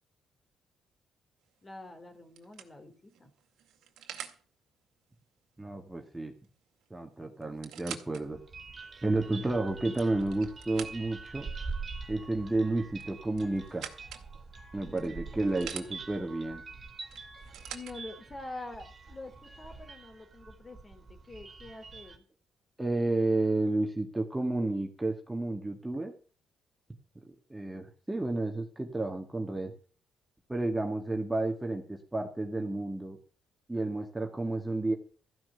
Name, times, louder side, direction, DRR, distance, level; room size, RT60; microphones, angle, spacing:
sound 1, 1.5-1.8 2.4-4.4 6.4-6.6 6.8-6.9 7.4-8.2 8.8-8.9 9.7-11.3 12.9-14.3 15.0-15.9 17.1-18.0 18.9-19.0, right 10 dB, 80° right, 2.0 m, -45 dB
voice 1, 1.6-3.3 14.9-15.2 17.7-22.3, left 2 dB, 25° left, 6 dB, 3.0 m, -46 dB
voice 2, 5.6-6.3 6.9-8.4 9.0-11.5 12.1-13.9 14.7-16.6 22.8-26.1 27.3-29.7 30.5-33.2 33.7-34.9, right 2 dB, 10° right, 3 dB, 2.0 m, -31 dB
sound 2, 8.2-22.2, right 4 dB, 35° right, 2.6 m, -45 dB
14.5 x 6.1 x 7.9 m, 0.41 s
cardioid pair, 90°, 0 cm